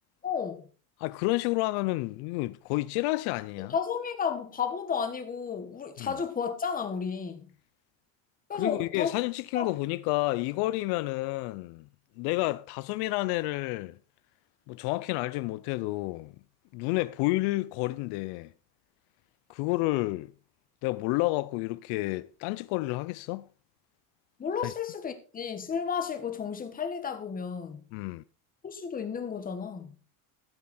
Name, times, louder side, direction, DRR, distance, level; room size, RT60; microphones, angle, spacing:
voice 1, 0.2-0.7 3.7-7.5 8.5-9.1 9.5-9.7 24.4-27.8 28.6-29.9, left 6 dB, 20° left, 1.5 m, -32 dB
voice 2, 1.0-3.7 6.0-6.1 8.5-11.9 12.2-14.0 14.7-16.4 16.7-18.5 19.5-20.3 20.8-23.5 24.6-24.7 27.9-28.2, left 20 dB, 75° left, 0.6 m, -30 dB
13.5 x 7.4 x 4.3 m
cardioid pair, 155°, 39 cm